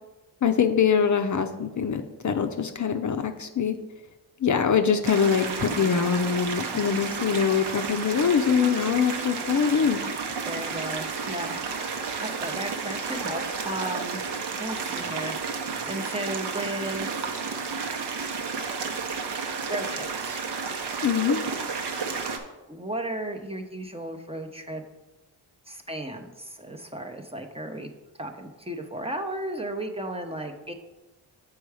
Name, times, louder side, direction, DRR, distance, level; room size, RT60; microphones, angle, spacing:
voice 1, 0.4-3.8 4.4-10.0 21.0-21.4, left 7 dB, 45° left, 6 dB, 0.6 m, -23 dB
sound 1, 5.0-22.4, right 5 dB, 70° right, 0.9 m, -32 dB
voice 2, 5.4-5.9 10.5-11.6 12.2-14.2 14.6-15.3 15.9-17.1 19.7-20.4 22.7-24.8 25.7-27.9 28.2-30.7, right 1 dB, 15° right, 4 dB, 0.7 m, -34 dB
6.9 x 4.6 x 4.8 m, 1.1 s
cardioid pair, 80°, 43 cm